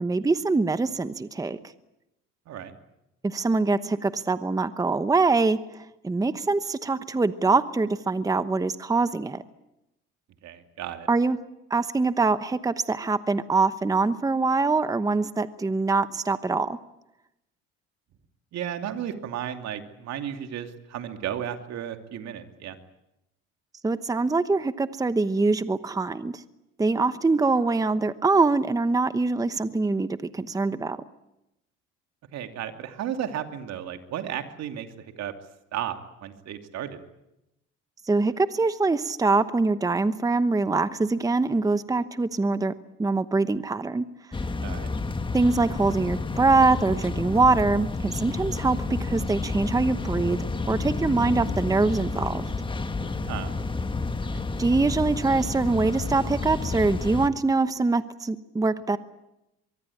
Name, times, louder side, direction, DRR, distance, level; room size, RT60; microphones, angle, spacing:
voice 1, 0.0-1.6 3.2-9.4 11.1-11.4 11.7-16.8 23.8-26.4 26.8-31.0 38.1-42.7 43.0-44.0 45.3-50.4 50.7-52.4 54.6-59.0, right 3 dB, 10° right, 12 dB, 1.0 m, -24 dB
voice 2, 10.4-11.1 18.5-22.8 32.3-35.3 35.7-37.0 44.6-44.9 53.0-53.5, right 10 dB, 60° right, 6 dB, 2.8 m, -34 dB
sound 1, 44.3-57.3, left 3 dB, 15° left, 1.5 m, -30 dB
24.0 x 23.5 x 8.6 m, 0.88 s
cardioid pair, 115°, 30 cm